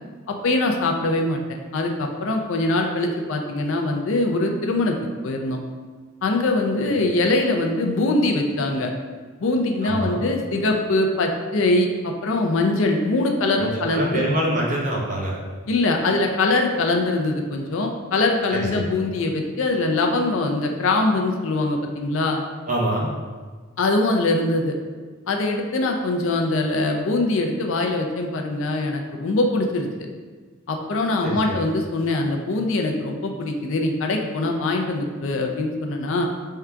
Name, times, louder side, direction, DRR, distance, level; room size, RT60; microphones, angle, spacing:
voice 1, 0.3-1.4 1.7-5.0 5.2-5.6 6.2-8.9 9.4-14.3 15.7-22.4 23.8-24.7 25.3-29.9 30.7-36.3, left 2 dB, 70° left, 3 dB, 0.4 m, -22 dB
voice 2, 9.8-10.2 13.6-15.4 18.5-18.9 22.7-23.1 31.2-31.6, right 1 dB, 35° right, -3 dB, 0.7 m, -25 dB
3.7 x 2.3 x 4.4 m, 1.5 s
head